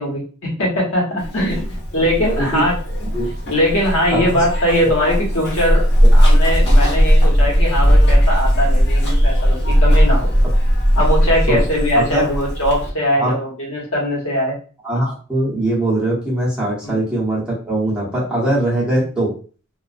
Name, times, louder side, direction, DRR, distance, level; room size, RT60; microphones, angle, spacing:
voice 1, 0.0-3.1 3.5-5.8 6.1-10.3 10.9-14.6 16.8-17.0, equal, 75° left, -3 dB, 1.0 m, -20 dB
Zipper (clothing), 1.2-12.9, equal, 50° left, 0.8 m, -16 dB
voice 2, 4.1-4.4 11.5-11.6 11.9-12.3 13.1-13.3 14.8-19.3, right 1 dB, 5° right, -8 dB, 0.9 m, -21 dB
2.4 x 2.1 x 2.5 m, 0.39 s
head